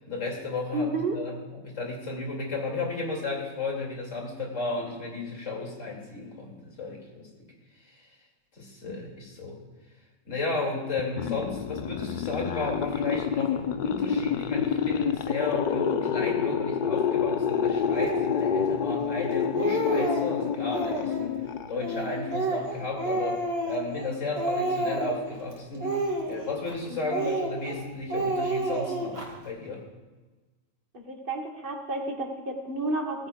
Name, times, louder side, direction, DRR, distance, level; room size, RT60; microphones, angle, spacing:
voice 1, 0.1-7.3 7.8-8.0 8.6-9.6 10.3-21.4 21.7-25.9 26.3-29.8, left 3 dB, 85° left, -1 dB, 2.7 m, -33 dB
voice 2, 0.7-1.2 27.0-27.3 30.9-33.3, right 2 dB, 45° right, 1 dB, 1.6 m, -31 dB
sound 1, 11.0-22.1, left 7 dB, 55° left, 0.6 m, -28 dB
Speech, 17.9-18.3 19.0-19.1 19.4-20.3 20.7-21.3 21.8-24.1 24.4-25.3 25.8-26.7 27.1-27.8 28.1-29.3, right 2 dB, 60° right, 2.3 m, -29 dB
16.5 x 14.5 x 2.3 m, 1.3 s
omnidirectional pair, 1.3 m